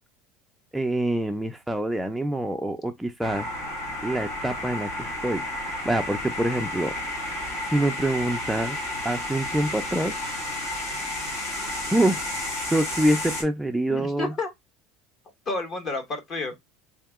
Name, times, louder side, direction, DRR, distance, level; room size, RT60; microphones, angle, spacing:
voice 1, 0.7-3.5 4.0-5.4 5.9-6.9 7.6-8.8 9.0-10.2 11.9-12.2 12.7-14.3, right 1 dB, 5° right, 0.3 m, -25 dB
sound 1, 3.2-13.4, left 1 dB, 70° left, 2.0 m, -32 dB
voice 2, 13.9-14.5 15.5-16.7, left 3 dB, 35° left, 1.1 m, -31 dB
3.6 x 2.8 x 3.5 m
cardioid pair, 150°, 0 cm